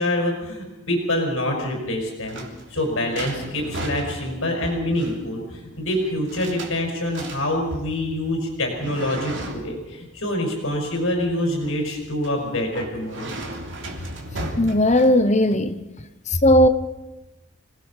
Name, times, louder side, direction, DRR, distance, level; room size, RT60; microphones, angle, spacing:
voice 1, 0.0-2.4 2.7-13.3, left 1 dB, 80° left, 5.3 m, -26 dB
sound 1, 1.9-15.5, right 1 dB, 65° right, 3.2 m, -36 dB
voice 2, 14.6-15.8 16.3-16.7, left 1 dB, 35° left, 1.0 m, -17 dB
26.5 x 18.5 x 5.7 m
head